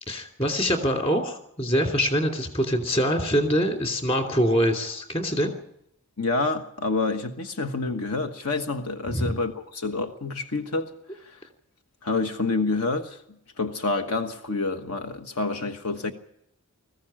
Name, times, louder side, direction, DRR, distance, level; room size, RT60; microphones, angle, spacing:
voice 1, 0.1-5.5 9.1-9.3, equal, 25° left, 2.8 m, -24 dB
voice 2, 6.2-11.4 12.0-13.2 13.6-16.1, left 3 dB, 75° left, 1.3 m, -28 dB
20.5 x 15.0 x 8.8 m
head